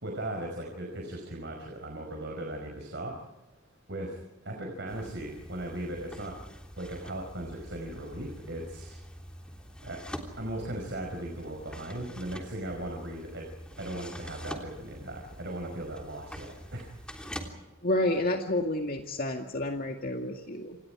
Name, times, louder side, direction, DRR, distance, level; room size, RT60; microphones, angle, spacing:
voice 1, 0.0-3.1 3.9-6.4 6.8-9.0 9.8-13.5 13.8-17.0, right 1 dB, 60° right, 1 dB, 5.1 m, -38 dB
sound 1, 4.9-17.5, equal, 5° left, 3.4 m, -45 dB
voice 2, 17.8-20.8, left 1 dB, 45° left, 3 dB, 2.1 m, -30 dB
28.5 x 28.0 x 4.9 m, 1.1 s
head